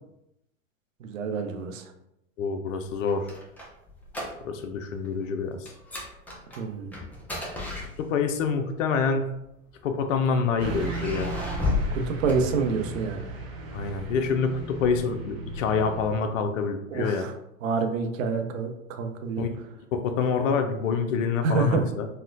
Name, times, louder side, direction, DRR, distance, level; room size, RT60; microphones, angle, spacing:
voice 1, 1.0-1.8 6.6-6.9 12.0-13.3 16.9-17.3 17.6-19.4 21.4-21.8, right 4 dB, 75° right, 5 dB, 0.6 m, -27 dB
voice 2, 2.4-3.3 4.4-5.7 8.0-9.4 9.8-11.3 13.7-17.3 19.4-19.6 19.9-22.1, left 5 dB, 75° left, 6 dB, 0.5 m, -27 dB
sound 1, 2.9-4.8 5.0-5.3 5.7-8.4 9.3-10.2 10.7-13.0, left 3 dB, 5° left, 0.3 m, -33 dB
Car passing by / Truck, 10.6-16.1, right 1 dB, 40° right, 0.6 m, -36 dB
4.2 x 2.1 x 2.5 m, 0.84 s
hypercardioid pair, 105°, 40 cm